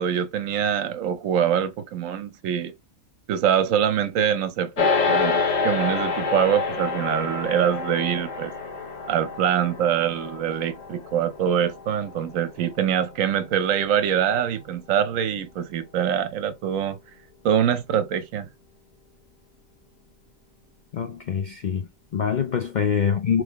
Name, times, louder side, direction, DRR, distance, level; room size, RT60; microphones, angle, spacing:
voice 1, 0.0-2.7 3.3-8.5 9.1-17.0 17.4-18.5, right 9 dB, 70° right, 1.0 m, -24 dB
sound 1, 4.8-14.3, left 4 dB, 40° left, 0.7 m, -28 dB
voice 2, 20.9-23.4, left 7 dB, 80° left, 0.4 m, -25 dB
3.6 x 3.3 x 3.5 m
omnidirectional pair, 1.5 m